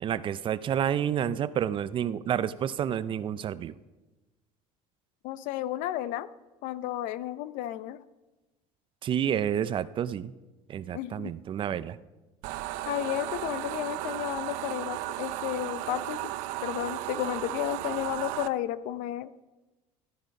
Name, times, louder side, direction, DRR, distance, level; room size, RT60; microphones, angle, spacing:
voice 1, 0.0-3.7 9.0-10.3 10.7-12.0, right 9 dB, 40° right, 16 dB, 0.5 m, -29 dB
voice 2, 5.2-6.3 6.6-8.0 10.9-11.3 12.9-16.3 16.6-19.3, left 13 dB, 70° left, 16 dB, 0.7 m, -33 dB
sound 1, 12.4-18.5, right 16 dB, 75° right, 0.7 m, -35 dB
13.0 x 13.0 x 5.3 m, 1.1 s
cardioid pair, 125°, 14 cm